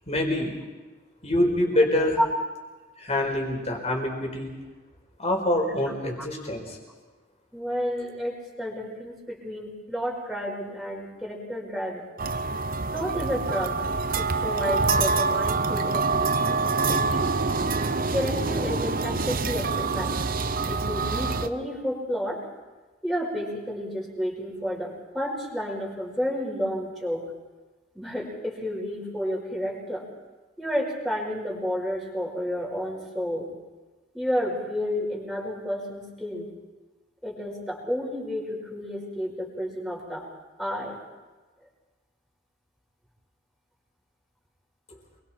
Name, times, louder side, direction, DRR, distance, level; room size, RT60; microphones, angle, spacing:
voice 1, 0.1-0.5 1.2-2.2 3.0-4.5 5.2-6.8, left 1 dB, 35° left, 1 dB, 4.8 m, -25 dB
voice 2, 7.5-12.1 12.9-13.8 14.2-17.4 18.1-20.2 20.7-22.4 23.0-27.2 27.9-30.1 30.6-33.5 34.1-36.5 37.2-40.3 40.6-41.0, equal, ahead, -3 dB, 5.4 m, -31 dB
sound 1, 12.2-21.5, right 4 dB, 50° right, 0.9 m, -26 dB
28.0 x 22.5 x 4.5 m, 1.2 s
head